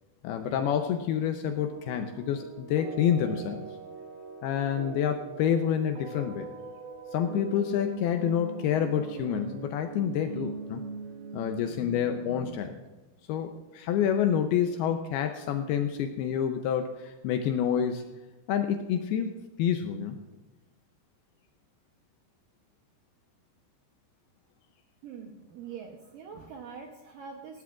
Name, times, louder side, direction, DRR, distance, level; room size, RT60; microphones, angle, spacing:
voice 1, 0.2-3.7 4.4-6.5 7.1-10.8 11.3-12.8 13.3-18.0 18.5-19.3 19.6-20.2, left 9 dB, 90° left, 6 dB, 2.3 m, -28 dB
sound 1, 1.7-12.5, right 4 dB, 60° right, 4.4 m, -41 dB
voice 2, 25.0-27.6, right 6 dB, 85° right, 2 dB, 1.9 m, -44 dB
19.0 x 17.0 x 2.4 m, 1.1 s
omnidirectional pair, 5.3 m